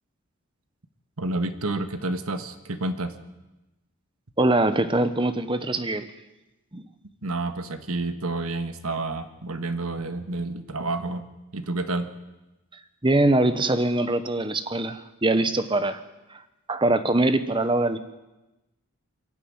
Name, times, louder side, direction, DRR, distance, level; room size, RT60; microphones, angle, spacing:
voice 1, 1.2-3.1 7.2-12.1, right 2 dB, 75° right, 9 dB, 1.6 m, -29 dB
voice 2, 4.4-6.1 6.7-6.8 13.0-16.0 16.3-16.4 16.7-18.0, right 2 dB, 20° right, 12 dB, 1.0 m, -23 dB
23.0 x 12.5 x 9.6 m, 1.0 s
head